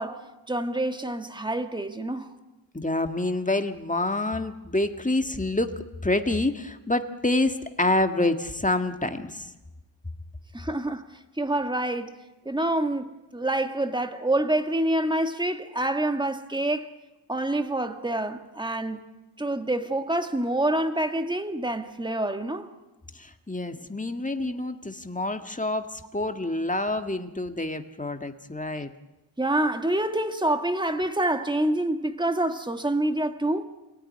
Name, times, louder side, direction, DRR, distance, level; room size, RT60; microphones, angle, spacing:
voice 1, 0.0-2.3 10.5-11.0 11.4-12.1 12.4-16.9 17.3-19.0 19.4-22.7 29.4-33.6, right 1 dB, 10° right, 1.7 m, -27 dB
voice 2, 2.7-5.7 6.0-9.5 23.1-28.9, left 2 dB, 15° left, 1.7 m, -27 dB
27.5 x 18.0 x 9.8 m
wide cardioid pair, 90°, 46 cm